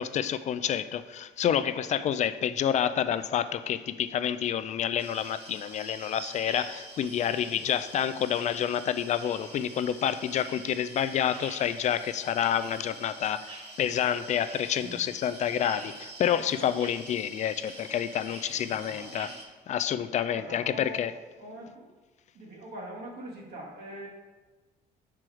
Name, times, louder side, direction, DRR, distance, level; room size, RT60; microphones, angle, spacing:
voice 1, 0.0-13.4 13.8-19.3 19.7-21.1, left 9 dB, 45° left, 13 dB, 0.4 m, -28 dB
sound 1, 5.0-19.4, right 2 dB, 35° right, 1.3 m, -46 dB
voice 2, 18.5-19.4 20.3-21.1 21.4-21.9 22.3-24.1, right 1 dB, 70° right, -4 dB, 1.7 m, -43 dB
6.2 x 4.6 x 4.8 m, 1.3 s
cardioid pair, 110°, 17 cm